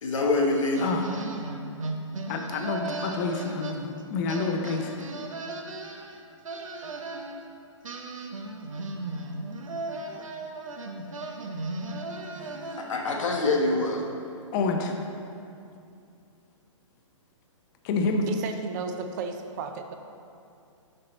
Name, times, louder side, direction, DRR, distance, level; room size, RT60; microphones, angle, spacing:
voice 1, 0.0-0.8 12.8-14.1, left 2 dB, 75° left, 0 dB, 1.2 m, -25 dB
voice 2, 0.8-1.2 2.3-5.0 14.5-15.0 17.8-18.3, left 3 dB, 35° left, 4 dB, 0.6 m, -28 dB
sound 1, 0.8-4.0 4.3-7.4 7.8-13.1, right 2 dB, 85° right, 0.8 m, -36 dB
voice 3, 18.3-20.0, right 5 dB, 35° right, 6 dB, 0.5 m, -34 dB
6.7 x 5.6 x 4.0 m, 2.5 s
hypercardioid pair, 135°, 16 cm